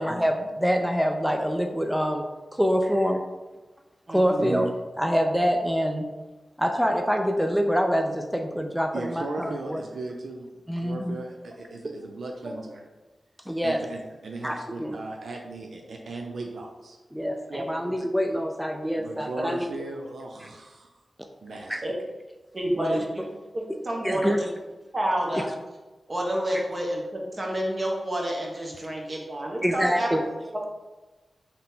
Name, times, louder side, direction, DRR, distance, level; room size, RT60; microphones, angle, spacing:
voice 1, 0.0-2.2 2.5-3.2 4.1-4.7 5.0-6.1 6.6-9.8 10.7-11.2 13.5-13.8 14.4-14.9 17.1-19.7 21.7-21.8 22.8-23.0 24.0-24.4 25.3-25.4 29.6-30.2, equal, 5° right, 4 dB, 0.3 m, -25 dB
voice 2, 4.1-4.5 17.5-17.9 21.8-21.9 22.5-23.2 23.5-24.5 24.9-25.5 26.1-30.7, right 1 dB, 40° right, -1 dB, 1.0 m, -29 dB
voice 3, 8.9-10.5 10.8-12.8 13.6-17.0 19.0-20.9 21.4-21.8, right 2 dB, 75° right, 2 dB, 0.4 m, -37 dB
3.8 x 2.8 x 3.6 m, 1.2 s
cardioid pair, 55°, 0 cm